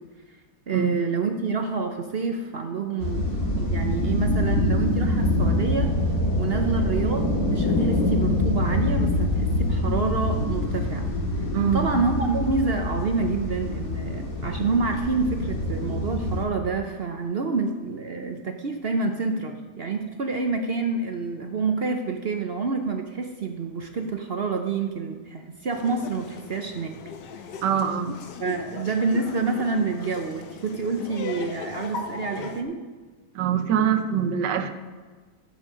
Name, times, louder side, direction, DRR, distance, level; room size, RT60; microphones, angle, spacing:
voice 1, 0.7-5.9 6.3-11.1 11.4-27.0 28.4-32.8, right 4 dB, 55° right, 4 dB, 0.7 m, -28 dB
sound 1, 3.0-16.4, left 1 dB, 55° left, 2.2 m, -25 dB
voice 2, 11.5-11.9 27.6-28.2 33.3-34.7, right 8 dB, 80° right, 9 dB, 1.4 m, -24 dB
Laughter, 25.7-32.6, left 5 dB, 80° left, 1.4 m, -38 dB
15.0 x 6.4 x 5.1 m, 1.4 s
omnidirectional pair, 1.9 m